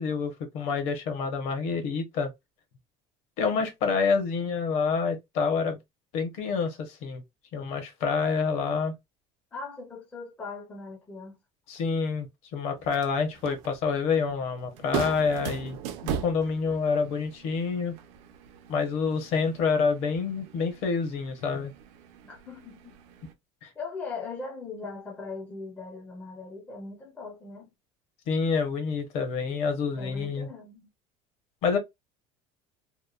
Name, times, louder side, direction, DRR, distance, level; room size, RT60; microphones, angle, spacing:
voice 1, 0.0-2.3 3.4-5.8 6.1-7.2 7.5-8.9 11.7-15.8 16.0-17.9 18.7-21.7 23.6-23.7 28.3-30.5 31.6-31.8, left 5 dB, 50° left, 0.8 m, -27 dB
voice 2, 9.5-11.4 22.2-22.9 23.8-27.7 30.0-30.9, left 4 dB, 10° left, 0.5 m, -40 dB
sound 1, 12.8-23.3, right 8 dB, 50° right, 0.4 m, -40 dB
2.9 x 2.0 x 2.3 m
cardioid pair, 180°, 14 cm